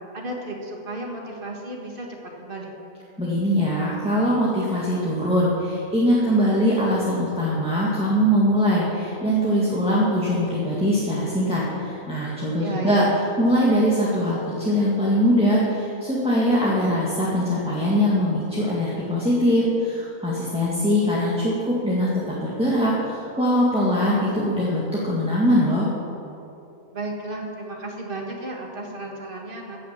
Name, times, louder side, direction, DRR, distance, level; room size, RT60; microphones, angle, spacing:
voice 1, 0.1-2.1 2.4-2.8 12.6-13.2 26.9-29.8, right 2 dB, 35° right, 0 dB, 1.9 m, -33 dB
voice 2, 3.2-13.0 13.4-25.9, equal, 5° right, -7 dB, 1.7 m, -22 dB
15.5 x 6.3 x 7.3 m, 2.9 s
omnidirectional pair, 1.5 m